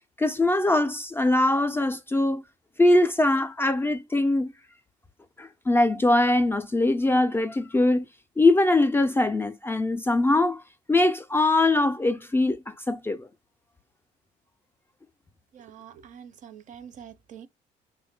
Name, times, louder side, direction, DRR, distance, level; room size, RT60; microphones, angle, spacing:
voice 1, 0.2-2.4 2.8-4.5 5.4-8.0 8.4-10.6 10.9-13.3, left 2 dB, 15° left, 0.3 m, -22 dB
voice 2, 15.5-17.5, right 8 dB, 50° right, 0.5 m, -45 dB
3.3 x 2.2 x 3.2 m
cardioid pair, 110°, 17 cm